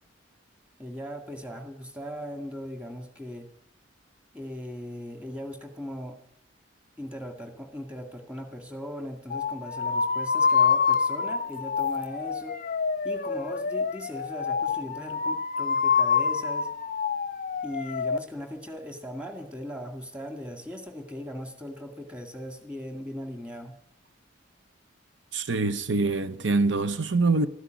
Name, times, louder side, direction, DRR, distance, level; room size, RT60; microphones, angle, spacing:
voice 1, 0.8-3.5 4.3-6.2 7.0-12.6 13.0-16.7 17.6-23.8, equal, 5° right, 2.1 m, -39 dB
sound 1, 9.3-18.2, left 5 dB, 45° left, 0.5 m, -26 dB
voice 2, 25.3-27.5, right 3 dB, 75° right, 0.8 m, -24 dB
13.5 x 10.0 x 9.3 m
head